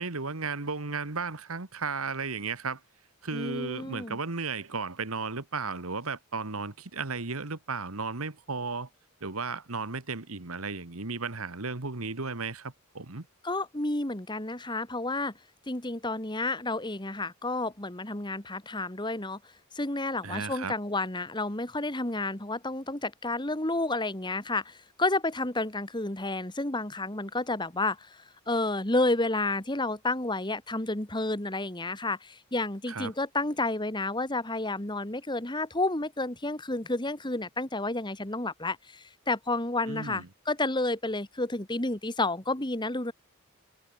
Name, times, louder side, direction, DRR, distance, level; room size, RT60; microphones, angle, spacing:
voice 1, 0.0-2.8 3.2-8.9 9.2-13.3 20.2-20.8 32.9-33.1 39.9-40.3, right 4 dB, 75° right, 1.7 m, -34 dB
voice 2, 3.3-4.2 13.4-15.3 15.7-19.4 19.8-28.1 28.5-43.1, left 2 dB, 20° left, 1.9 m, -30 dB
head